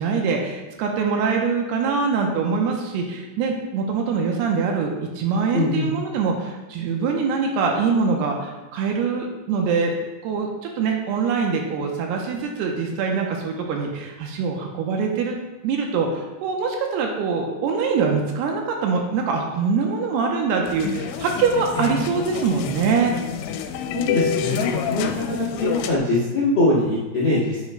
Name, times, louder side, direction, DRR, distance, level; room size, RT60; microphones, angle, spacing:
voice 1, 0.0-9.9 10.2-10.5 10.8-15.4 15.6-23.1, right 5 dB, 80° right, 1 dB, 2.7 m, -23 dB
voice 2, 5.5-5.9 21.7-21.9 23.9-25.1 25.4-27.7, left 2 dB, 55° left, -7 dB, 1.3 m, -22 dB
sound 1, 20.7-26.0, left 8 dB, 85° left, 2.8 m, -28 dB
9.6 x 8.3 x 2.2 m, 1.2 s
omnidirectional pair, 5.0 m